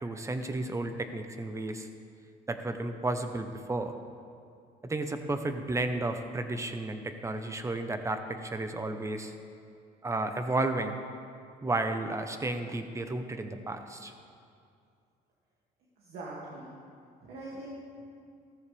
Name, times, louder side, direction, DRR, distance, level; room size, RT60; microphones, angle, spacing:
voice 1, 0.0-1.9 2.5-4.0 4.8-9.3 10.0-11.0 11.6-14.1, right 2 dB, 15° right, 7 dB, 1.0 m, -32 dB
voice 2, 16.0-16.8 17.2-18.0, right 1 dB, 75° right, -6 dB, 2.5 m, -43 dB
16.5 x 14.0 x 3.5 m, 2.4 s
cardioid pair, 110°, 17 cm